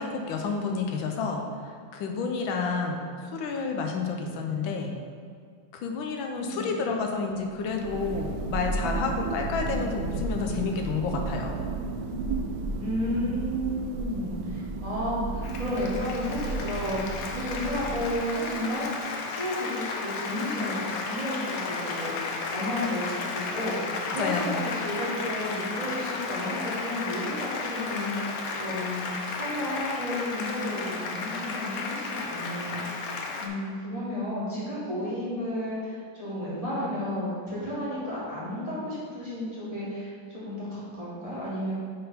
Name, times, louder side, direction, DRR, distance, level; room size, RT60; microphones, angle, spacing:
voice 1, 0.0-4.9 5.7-11.6 24.1-24.6, left 4 dB, 80° left, 2 dB, 1.5 m, -30 dB
voice 2, 6.3-6.7 12.8-19.0 19.3-33.0 33.4-41.7, left 1 dB, 20° right, -10 dB, 1.8 m, -32 dB
Thunder, 7.5-18.5, right 3 dB, 75° right, 1.0 m, -33 dB
Applause, 15.4-33.5, left 4 dB, 65° left, 0.9 m, -33 dB
8.8 x 3.7 x 4.3 m, 2.1 s
omnidirectional pair, 2.1 m